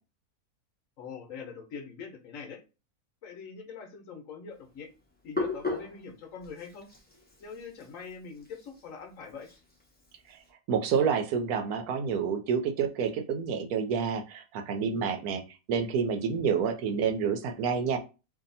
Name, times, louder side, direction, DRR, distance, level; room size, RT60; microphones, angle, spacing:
voice 1, 1.0-2.6 3.2-4.9 5.2-6.9 7.4-9.5, left 6 dB, 65° left, 3 dB, 1.1 m, -43 dB
Hands, 4.5-10.5, left 3 dB, 10° left, 0.6 m, -39 dB
voice 2, 10.7-15.4 15.7-18.0, right 6 dB, 80° right, 6 dB, 1.1 m, -28 dB
2.7 x 2.6 x 4.0 m, 0.31 s
omnidirectional pair, 1.6 m